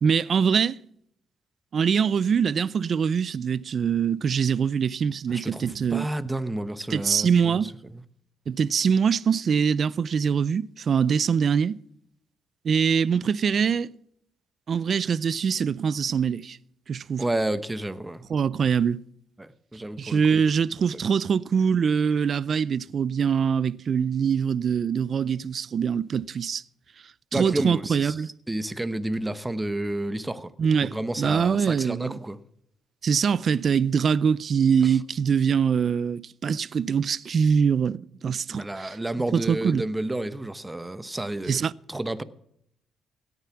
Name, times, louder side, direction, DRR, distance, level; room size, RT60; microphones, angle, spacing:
voice 1, 0.0-0.8 1.7-6.1 6.9-7.7 8.5-11.8 12.6-13.9 14.7-16.6 16.9-17.2 18.3-19.0 20.0-26.6 27.3-28.3 30.6-32.2 33.0-39.0 39.3-39.8 41.5-41.7, right 6 dB, 50° right, 0.5 m, -23 dB
voice 2, 5.3-8.0 17.2-18.2 19.4-20.4 20.9-21.0 27.3-28.2 28.5-30.5 30.8-32.4 34.8-34.9 38.5-41.6 41.9-42.2, right 1 dB, 15° right, 1.0 m, -31 dB
17.5 x 9.6 x 5.9 m
cardioid pair, 90°, 0 cm